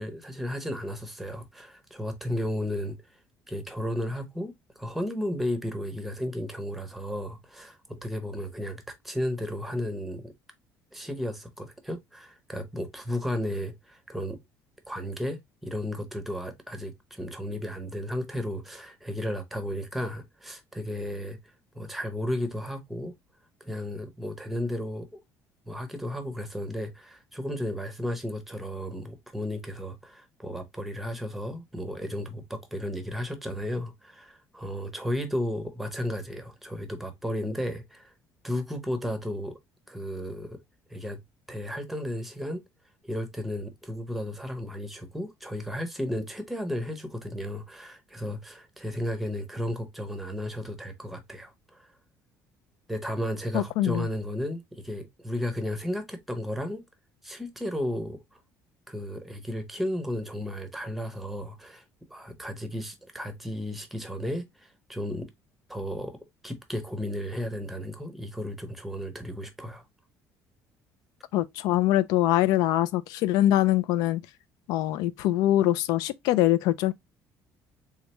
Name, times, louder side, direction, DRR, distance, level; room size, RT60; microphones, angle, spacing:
voice 1, 0.0-3.2 3.5-10.3 10.9-14.4 14.9-21.4 21.7-23.1 23.6-25.1 25.7-38.1 38.4-39.6 39.9-40.6 40.9-41.2 41.5-42.6 43.0-51.9 52.9-56.8 57.2-58.2 58.9-61.8 62.1-65.3 65.7-69.8, left 1 dB, ahead, 0.7 m, -34 dB
voice 2, 53.5-54.1 71.3-74.2 74.7-76.9, left 14 dB, 85° left, 0.4 m, -23 dB
3.6 x 3.3 x 2.9 m
cardioid pair, 160°, 6 cm